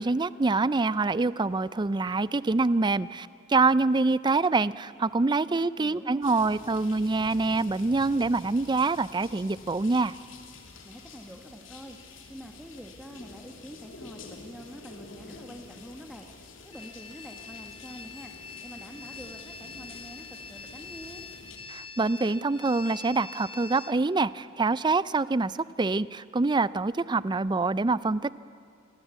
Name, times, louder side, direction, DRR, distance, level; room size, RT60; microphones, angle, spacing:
voice 1, 0.0-10.1 21.7-28.4, right 3 dB, 25° right, 18 dB, 0.5 m, -25 dB
voice 2, 5.5-6.6 10.8-16.3 16.6-18.3 18.6-21.2, equal, ahead, 2 dB, 1.4 m, -46 dB
sound 1, 6.2-21.6, left 3 dB, 90° left, 2.8 m, -48 dB
sound 2, 16.7-23.9, left 4 dB, 25° left, 0.8 m, -44 dB
26.5 x 19.0 x 8.2 m, 2.6 s
head